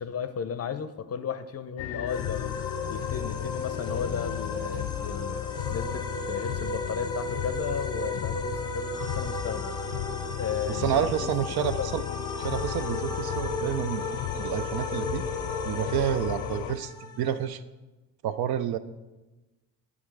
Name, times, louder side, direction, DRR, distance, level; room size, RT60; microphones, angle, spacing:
voice 1, 0.0-2.6 2.9-5.4 5.7-9.7 10.4-11.3 11.6-11.9, left 7 dB, 35° left, 11 dB, 0.6 m, -34 dB
sound 1, 1.8-16.7, left 12 dB, 80° left, 0.5 m, -34 dB
sound 2, 2.1-17.5, equal, 10° left, 0.9 m, -36 dB
voice 2, 10.7-12.0 12.4-14.1 14.3-15.2 15.6-17.6 18.2-18.8, right 10 dB, 60° right, 13 dB, 0.5 m, -29 dB
9.0 x 3.6 x 4.7 m, 1.1 s
supercardioid pair, 55°, 43 cm